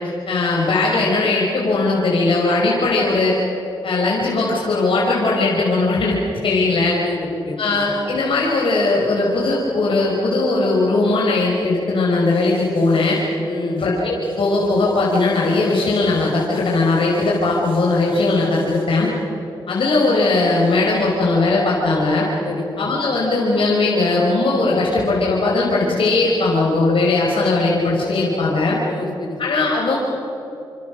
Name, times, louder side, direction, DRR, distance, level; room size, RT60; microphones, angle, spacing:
voice 1, 0.3-3.4 3.8-7.0 7.6-13.2 13.8-19.1 19.7-22.3 22.8-28.8 29.4-30.0, left 3 dB, 70° left, -4 dB, 5.3 m, -19 dB
voice 2, 7.0-7.7 13.4-13.8 22.4-22.8 28.8-29.4, left 3 dB, 55° left, 4 dB, 4.3 m, -29 dB
28.0 x 26.0 x 6.4 m, 2.9 s
cardioid pair, 70°, 9 cm